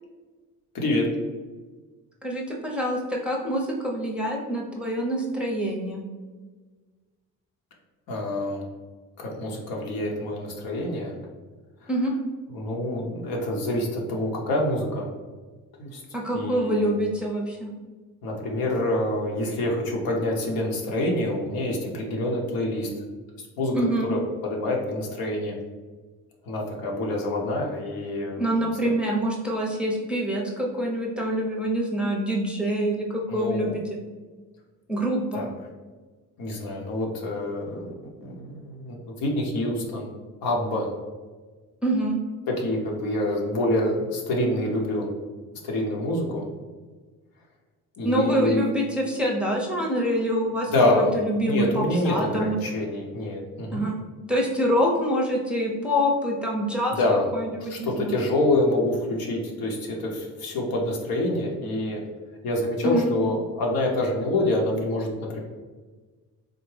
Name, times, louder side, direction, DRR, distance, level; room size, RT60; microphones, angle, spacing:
voice 1, 0.7-1.1 8.1-8.6 9.2-11.1 11.8-11.9 12.5-15.1 15.8-16.0 16.3-16.9 18.2-22.9 23.6-25.6 26.5-28.4 33.3-33.8 35.3-35.5 36.4-37.9 38.2-40.1 40.4-40.9 42.5-45.1 45.6-46.5 48.0-48.7 50.7-51.1 51.4-53.8 56.9-57.3 57.7-62.0 62.4-65.4, left 1 dB, 70° left, -1 dB, 0.8 m, -26 dB
voice 2, 2.2-6.0 11.9-12.1 16.1-17.7 23.7-24.1 28.4-34.0 34.9-35.4 41.8-42.2 48.0-52.6 53.7-54.0 54.3-56.9 57.3-58.2 62.8-63.1, equal, 5° right, -2 dB, 0.6 m, -26 dB
3.5 x 2.1 x 3.2 m, 1.4 s
supercardioid pair, 70°, 36 cm